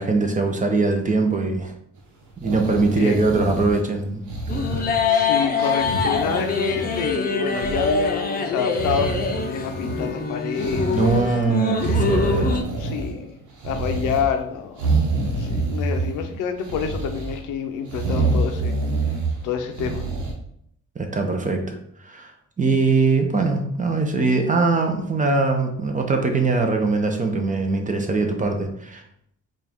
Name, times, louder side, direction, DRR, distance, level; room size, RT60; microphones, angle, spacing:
voice 1, 0.0-1.7 2.4-4.2 4.5-4.6 10.9-12.6 21.0-21.8 22.0-22.3 22.6-29.0, right 3 dB, 25° right, 4 dB, 0.7 m, -22 dB
sound 1, 2.3-3.9 4.3-5.2 5.6-7.1 7.4-8.1 8.7-10.2 10.5-11.3 11.7-13.3 13.6-14.3 14.8-16.2 16.6-17.4 17.9-19.4 19.7-20.3, right 3 dB, 75° right, 1.0 m, -27 dB
sound 2, 4.5-12.6, left 4 dB, 30° left, 0.6 m, -24 dB
voice 2, 5.1-11.3 12.3-14.9 15.2-18.7 19.4-20.1, left 7 dB, 85° left, 6 dB, 0.6 m, -28 dB
4.4 x 2.5 x 3.5 m, 0.70 s
cardioid pair, 90°, 30 cm